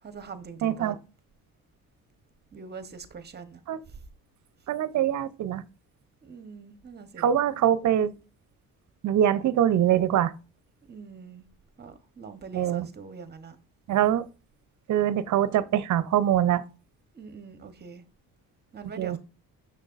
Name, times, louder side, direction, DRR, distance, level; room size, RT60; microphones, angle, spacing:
voice 1, 0.0-0.9 2.5-3.6 6.2-7.3 10.9-11.5 11.8-13.5 17.1-18.0 18.7-19.2, right 5 dB, 30° right, 1.0 m, -43 dB
voice 2, 0.6-1.0 3.7-3.8 4.7-5.6 7.2-8.1 9.0-10.3 12.5-12.9 13.9-14.3 14.9-16.6 19.0-19.2, right 10 dB, 55° right, 0.6 m, -23 dB
6.6 x 6.5 x 2.5 m
cardioid pair, 105°, 36 cm